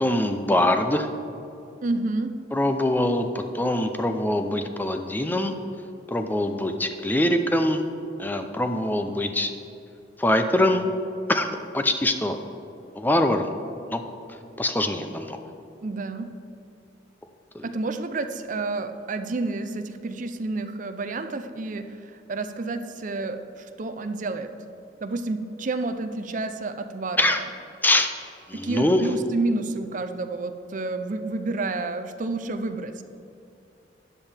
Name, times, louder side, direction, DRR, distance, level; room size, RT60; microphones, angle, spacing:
voice 1, 0.0-1.1 2.5-5.5 6.1-7.8 8.2-9.5 10.2-10.8 11.3-12.4 12.9-13.5 13.9-14.0 14.6-15.4 17.5-17.7 27.2-27.4 27.8-28.1 28.5-29.0, left 1 dB, 10° left, 6 dB, 0.5 m, -23 dB
voice 2, 1.8-2.4 15.8-16.3 17.6-24.5 25.0-27.4 28.5-33.0, right 3 dB, 45° right, 8 dB, 0.5 m, -30 dB
12.5 x 9.1 x 3.4 m, 2.7 s
head